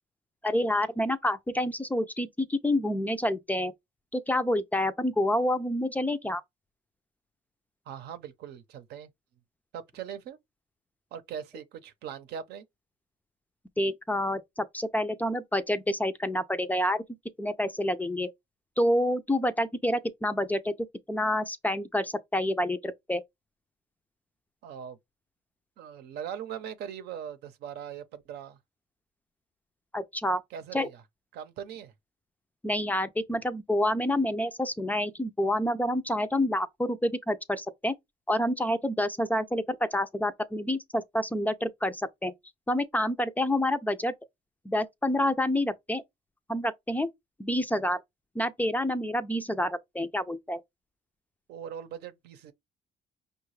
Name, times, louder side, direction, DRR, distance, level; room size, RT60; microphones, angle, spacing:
voice 1, 0.4-3.7 4.1-6.4 13.8-17.0 17.4-18.3 18.8-20.7 21.1-23.2 29.9-30.4 30.7-30.9 32.6-37.9 38.3-42.3 42.7-44.1 44.7-46.0 46.5-47.1 47.4-48.0 48.4-50.6, left 1 dB, 10° left, 0.4 m, -28 dB
voice 2, 7.9-9.1 9.7-10.4 11.1-12.7 24.6-25.0 25.8-28.6 30.5-31.0 31.3-31.9 51.5-52.5, right 9 dB, 75° right, 0.7 m, -40 dB
5.6 x 2.3 x 3.1 m
cardioid pair, 110°, 17 cm